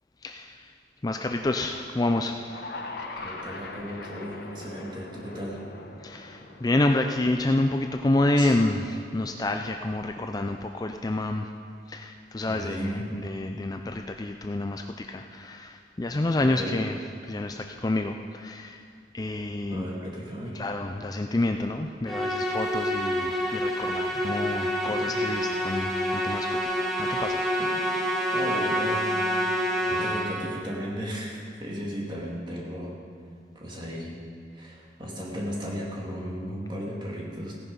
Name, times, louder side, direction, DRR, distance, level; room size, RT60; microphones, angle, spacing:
voice 1, 0.2-0.7 1.0-2.7 6.0-11.5 11.9-17.0 17.2-18.8 19.1-19.8 20.5-27.4, left 2 dB, 20° left, 5 dB, 0.4 m, -28 dB
sound 1, 2.4-8.7, left 2 dB, 60° left, 1.3 m, -41 dB
voice 2, 3.2-5.7 8.4-8.5 12.5-13.1 16.4-16.8 19.7-20.6 24.1-24.2 24.8-25.2 28.3-29.6 29.9-33.0 33.5-34.2 34.5-37.5, equal, 25° right, -3 dB, 2.4 m, -35 dB
Musical instrument, 22.1-30.6, equal, ahead, 1.4 m, -27 dB
16.5 x 9.8 x 5.4 m, 2.2 s
head